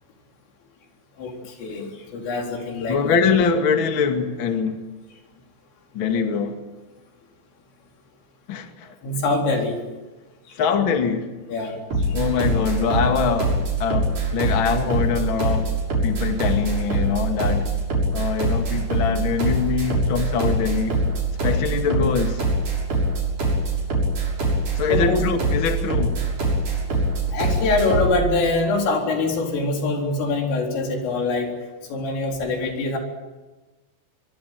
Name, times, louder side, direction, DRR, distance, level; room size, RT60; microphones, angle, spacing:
voice 1, 1.2-3.1 9.0-9.8 11.5-11.8 24.9-25.2 27.3-31.5 31.9-33.0, left 3 dB, 70° left, 6.5 m, -24 dB
voice 2, 2.9-4.8 5.9-6.6 8.5-8.9 10.6-11.3 12.1-15.7 16.0-17.7 18.1-21.0 21.4-22.4 24.8-26.2, left 6 dB, 55° left, 1.4 m, -23 dB
sound 1, 11.9-28.2, right 2 dB, 40° right, 8.1 m, -23 dB
24.0 x 24.0 x 9.3 m
omnidirectional pair, 5.9 m